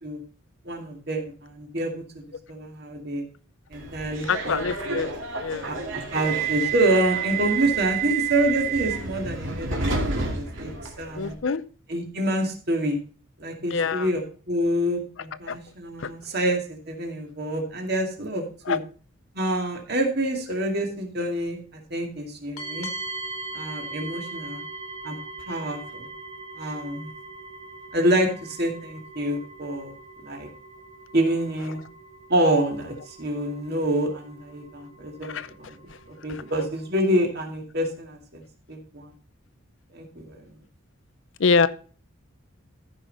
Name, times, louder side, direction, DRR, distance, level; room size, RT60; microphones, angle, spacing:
voice 1, 0.7-2.0 2.5-3.3 3.7-4.6 5.6-5.8 6.1-9.8 10.0-11.4 11.9-13.0 13.4-18.8 19.3-22.9 23.5-24.6 25.0-25.2 25.5-26.1 26.6-27.1 27.9-29.9 30.2-30.5 31.1-31.8 32.3-35.8 36.2-38.4 38.7-39.1 39.9-40.4, right 1 dB, 50° right, 2 dB, 2.2 m, -27 dB
Subway metro underground, 3.7-11.3, right 6 dB, 65° right, 2.4 m, -29 dB
voice 2, 4.3-5.1 5.4-5.8 11.2-11.6 13.7-14.1 15.5-15.6 16.0-16.1 18.7-18.8 35.2-35.5 36.3-36.4 41.4-41.7, left 5 dB, 60° left, 16 dB, 0.5 m, -25 dB
sound 1, 22.6-36.9, right 3 dB, 90° left, 2.0 m, -41 dB
14.0 x 5.7 x 4.1 m, 0.40 s
head